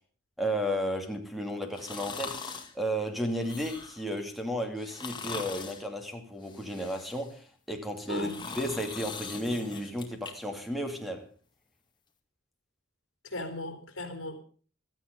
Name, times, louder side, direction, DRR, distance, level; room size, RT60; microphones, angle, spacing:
voice 1, 0.4-11.3, equal, ahead, 2.7 m, -33 dB
sound 1, 1.7-2.7 3.3-4.1 4.8-5.8 6.4-7.4 7.9-10.3 10.7-10.8, left 4 dB, 25° left, 2.2 m, -41 dB
voice 2, 13.2-14.4, left 2 dB, 60° left, 3.7 m, -37 dB
16.5 x 13.0 x 5.3 m
head